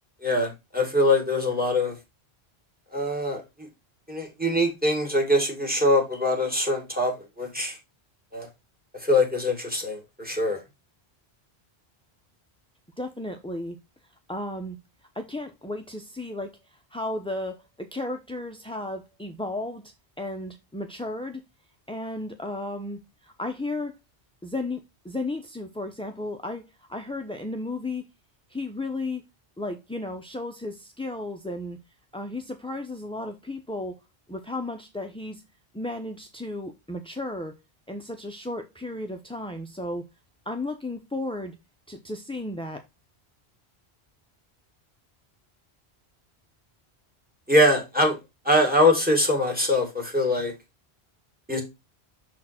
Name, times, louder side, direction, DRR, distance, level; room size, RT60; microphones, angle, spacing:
voice 1, 0.2-2.0 2.9-3.7 4.1-7.8 8.3-8.5 9.0-10.6 47.5-48.2 48.4-50.5 51.5-51.6, left 1 dB, 10° right, 2.2 m, -23 dB
voice 2, 13.0-13.8 14.3-14.8 15.1-16.5 16.9-21.4 21.9-23.9 24.4-28.1 28.5-29.2 29.6-31.8 32.1-34.0 34.3-35.4 35.7-37.6 37.9-40.0 40.5-41.6 41.9-42.8, left 2 dB, 5° left, 0.4 m, -34 dB
6.4 x 4.2 x 4.3 m
omnidirectional pair, 1.1 m